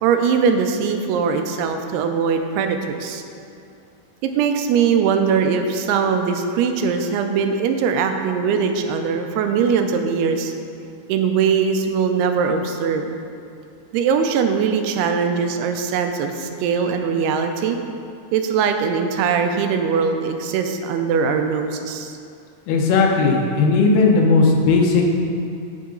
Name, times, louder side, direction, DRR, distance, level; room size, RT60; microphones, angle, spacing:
voice 1, 0.0-3.2 4.2-10.5 11.1-13.1 13.9-17.8 18.3-22.2, right 6 dB, 85° right, 6 dB, 2.6 m, -21 dB
voice 2, 22.7-25.1, left 4 dB, 85° left, 0 dB, 2.9 m, -16 dB
8.8 x 6.6 x 3.8 m, 2.5 s
omnidirectional pair, 4.6 m